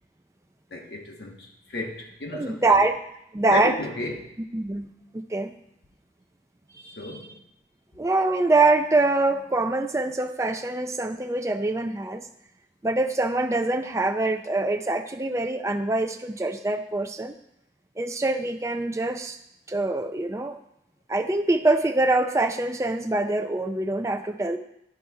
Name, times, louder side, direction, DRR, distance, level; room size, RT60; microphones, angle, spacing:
voice 1, 0.7-2.9 3.5-4.3 7.0-7.4, left 2 dB, 65° left, 0 dB, 1.3 m, -33 dB
voice 2, 2.3-2.9 3.3-3.8 4.5-5.5 6.8-7.2 8.0-12.3 12.8-17.3 18.0-19.4 19.7-20.6 21.1-24.6, right 2 dB, 15° right, 6 dB, 0.5 m, -24 dB
12.0 x 4.1 x 4.7 m, 0.80 s
head